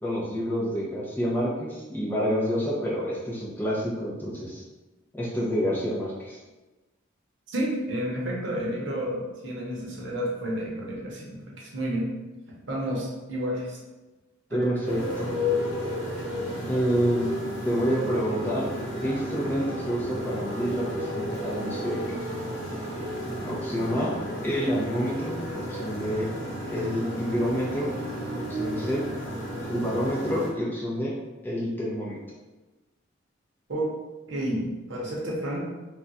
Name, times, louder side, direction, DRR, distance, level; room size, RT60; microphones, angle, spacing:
voice 1, 0.0-4.6 5.1-6.4 14.5-15.3 16.7-17.3 17.6-18.7 19.0-22.0 23.4-24.2 24.4-26.3 26.7-28.0 28.3-29.1 29.7-31.1 31.4-32.2, equal, 10° left, -6 dB, 0.5 m, -28 dB
voice 2, 7.5-12.1 12.7-13.8 14.5-14.7 33.7-33.9 34.3-35.6, right 1 dB, 65° right, -4 dB, 0.8 m, -30 dB
Motorcycle, 14.8-30.5, equal, 40° left, 0.9 m, -32 dB
2.3 x 2.2 x 3.9 m, 1.1 s
head